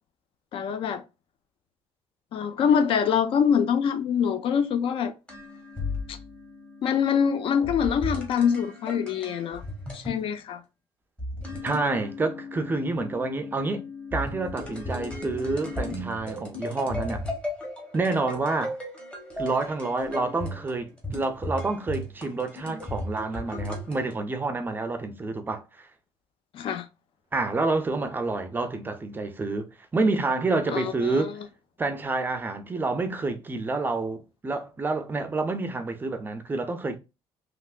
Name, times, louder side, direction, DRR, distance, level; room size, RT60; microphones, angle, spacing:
voice 1, 0.5-1.0 2.3-5.1 6.1-6.2 6.8-9.6 9.9-10.6 26.5-26.9 30.7-31.3, left 7 dB, 55° left, 0.4 m, -24 dB
sound 1, 5.3-10.2 11.2-24.1, left 2 dB, 10° left, 1.0 m, -36 dB
voice 2, 11.6-13.8 14.1-17.2 17.9-18.8 19.4-25.9 27.3-31.3 31.8-37.0, right 3 dB, 20° right, 0.4 m, -28 dB
3.3 x 2.8 x 2.4 m
cardioid pair, 160°, 11 cm